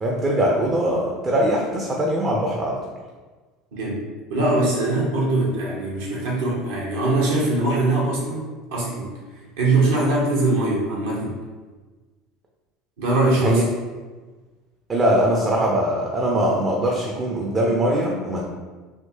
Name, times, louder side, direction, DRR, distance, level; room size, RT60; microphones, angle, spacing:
voice 1, 0.0-2.8 13.4-13.6 14.9-18.4, right 1 dB, 25° right, -2 dB, 0.5 m, -21 dB
voice 2, 3.7-4.0 4.3-9.1 9.6-11.4 13.0-13.6, right 2 dB, 65° right, -4 dB, 0.9 m, -22 dB
3.6 x 2.8 x 2.7 m, 1.3 s
figure-of-eight pair, 70°, 0 cm